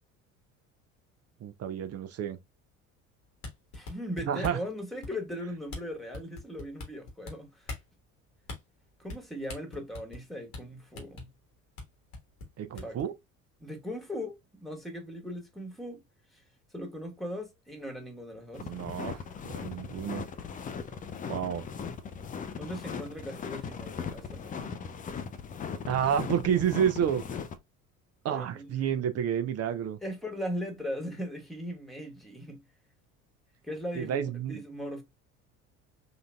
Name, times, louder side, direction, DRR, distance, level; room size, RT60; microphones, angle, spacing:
voice 1, 1.4-2.4 4.3-4.6 12.6-13.1 18.6-19.2 19.4-20.2 21.3-21.6 25.9-27.2 28.2-30.0 33.9-34.6, right 9 dB, 35° right, 0.6 m, -29 dB
sound 1, 3.3-4.7 5.0-5.3 5.7-5.8 6.1-7.3 7.6-7.9 8.4-8.6 9.1-9.2 9.5-10.2 10.5-10.6 10.9-11.2 11.8-11.9 12.1-13.0, left 3 dB, 80° left, 1.4 m, -40 dB
voice 2, 3.7-7.7 9.0-11.3 12.8-13.0 13.6-16.0 16.3-16.4 16.7-18.7 22.6-24.7 28.2-29.0 30.0-32.6 33.6-35.0, equal, ahead, 1.3 m, -39 dB
sound 2, 18.5-27.6, left 6 dB, 20° left, 0.4 m, -39 dB
3.9 x 2.5 x 2.2 m
hypercardioid pair, 65°, 42 cm